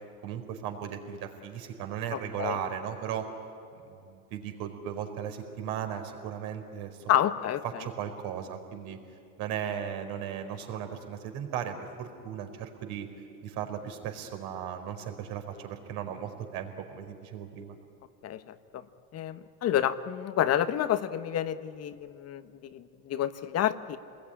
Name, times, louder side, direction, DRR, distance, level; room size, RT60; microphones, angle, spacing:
voice 1, 0.2-3.3 3.9-7.0 7.6-9.0 9.4-13.1 13.4-17.8, right 9 dB, 55° right, 5 dB, 4.4 m, -36 dB
voice 2, 2.1-2.6 7.1-7.8 18.2-18.9 19.1-24.0, left 11 dB, 35° left, 11 dB, 1.3 m, -29 dB
27.5 x 20.5 x 9.9 m, 2.6 s
hypercardioid pair, 105°, 43 cm